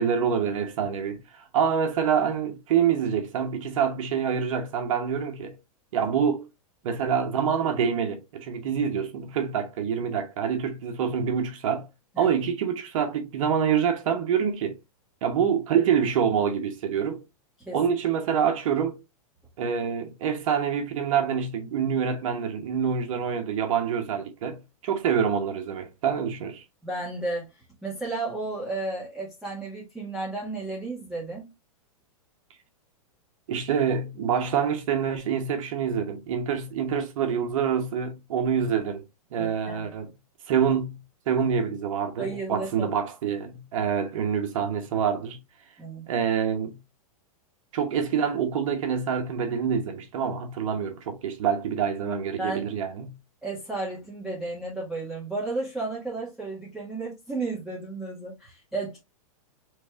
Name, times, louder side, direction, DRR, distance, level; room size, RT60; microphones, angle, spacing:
voice 1, 0.0-5.6 5.9-6.4 6.8-11.9 12.2-14.8 15.2-17.2 17.7-19.0 19.6-26.6 33.5-39.0 39.3-40.1 40.5-41.0 41.3-45.4 46.1-46.8 47.7-53.1, right 7 dB, 60° right, 1.1 m, -26 dB
voice 2, 26.8-27.5 27.8-31.5 39.4-39.9 42.2-42.9 45.8-46.1 52.4-52.7 53.4-59.0, right 3 dB, ahead, 1.8 m, -33 dB
5.2 x 3.3 x 2.4 m
hypercardioid pair, 150°, 19 cm